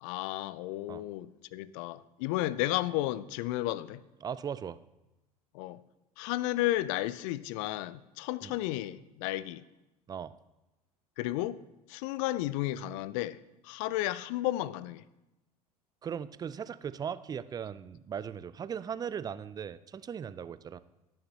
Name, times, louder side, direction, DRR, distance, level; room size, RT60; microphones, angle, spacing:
voice 1, 0.0-4.0 5.5-5.8 6.2-9.6 11.2-11.6 11.9-13.4 13.6-15.0, left 15 dB, 55° left, 0.5 m, -33 dB
voice 2, 4.2-4.8 8.4-8.5 10.1-10.3 16.0-20.8, right 7 dB, 20° right, 0.4 m, -38 dB
17.0 x 6.6 x 2.9 m
figure-of-eight pair, 70°, 19 cm